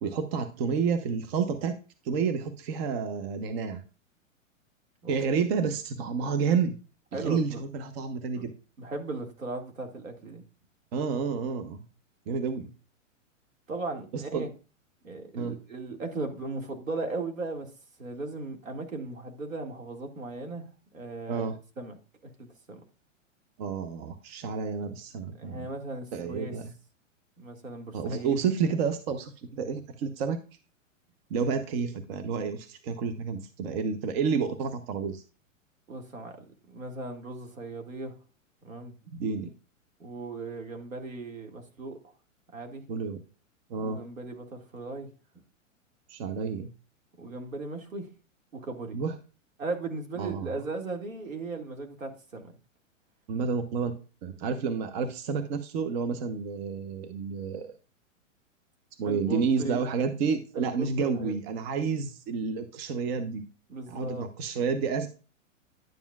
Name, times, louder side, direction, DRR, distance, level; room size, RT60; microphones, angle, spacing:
voice 1, 0.0-1.8 2.0-3.8 5.1-6.8 7.1-8.5 10.9-11.8 12.3-12.7 14.1-14.4 15.3-15.6 21.3-21.6 23.6-25.7 26.1-26.7 27.9-30.4 31.3-35.2 39.1-39.5 42.9-43.2 43.7-44.0 46.1-46.7 48.9-49.1 50.2-50.5 53.3-53.9 54.2-57.7 59.0-63.5 63.9-65.1, right 5 dB, 50° right, 1.0 m, -30 dB
voice 2, 7.1-7.6 8.3-8.4 8.8-10.4 13.7-14.5 15.0-17.7 18.0-20.7 20.9-21.5 21.8-22.0 22.4-22.8 25.4-26.6 27.4-28.4 35.9-38.1 38.6-38.9 40.0-42.0 42.5-42.8 43.8-45.1 47.2-48.1 48.5-49.0 49.6-52.5 59.0-59.8 60.5-61.3 63.7-64.3, right 3 dB, 85° right, 2.2 m, -37 dB
10.5 x 7.2 x 2.4 m
hypercardioid pair, 115°, 39 cm